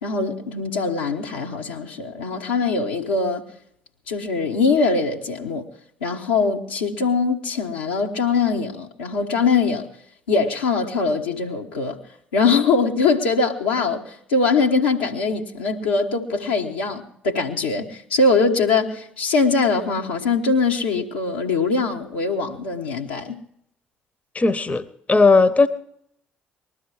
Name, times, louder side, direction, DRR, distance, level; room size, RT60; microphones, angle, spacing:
voice 1, 0.0-3.4 4.1-5.7 6.0-9.9 10.3-12.0 12.3-23.4, left 4 dB, 80° left, 0 dB, 1.3 m, -22 dB
voice 2, 24.3-25.7, left 3 dB, 25° left, 16 dB, 0.9 m, -17 dB
20.0 x 13.0 x 4.8 m, 0.70 s
figure-of-eight pair, 50°, 5 cm